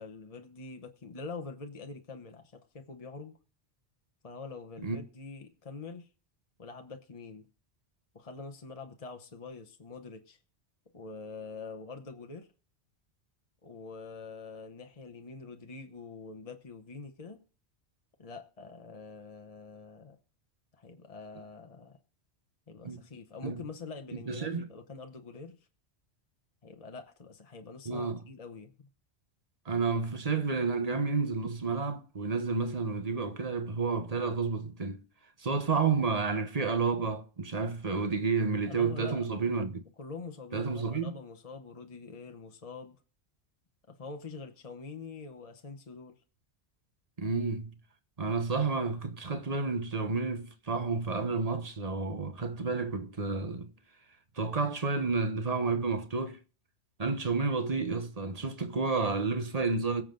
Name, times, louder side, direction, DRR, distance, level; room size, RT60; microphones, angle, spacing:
voice 1, 0.0-3.4 4.2-6.1 6.6-7.5 8.1-10.4 10.9-12.5 13.6-17.4 18.2-20.2 20.7-22.0 22.7-25.7 26.6-28.7 38.7-39.3 40.0-43.0 43.9-46.2, left 4 dB, 35° left, 1.0 m, -45 dB
voice 2, 24.3-24.7 27.8-28.2 29.6-35.0 35.4-39.8 40.5-41.1 47.2-47.8 48.2-53.7 54.4-56.4 57.0-60.0, right 4 dB, 35° right, 1.2 m, -30 dB
22.0 x 7.4 x 3.9 m
omnidirectional pair, 1.1 m